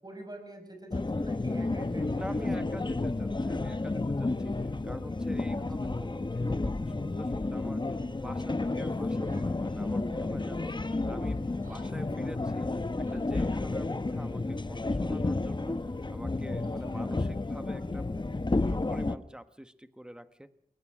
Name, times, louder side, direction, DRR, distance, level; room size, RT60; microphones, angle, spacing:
voice 1, 0.0-2.2 2.6-2.7 8.0-8.3 16.6-17.0, right 1 dB, 25° right, 5 dB, 5.9 m, -46 dB
sound 1, 0.9-19.2, left 2 dB, 30° left, 0.8 m, -31 dB
voice 2, 2.2-12.8 13.1-18.1 18.5-20.5, equal, 5° right, 10 dB, 1.3 m, -46 dB
Yell, 8.6-10.1 10.4-13.8, right 1 dB, 65° right, 7.7 m, -58 dB
22.0 x 19.0 x 6.3 m, 0.70 s
wide cardioid pair, 75°, 15 cm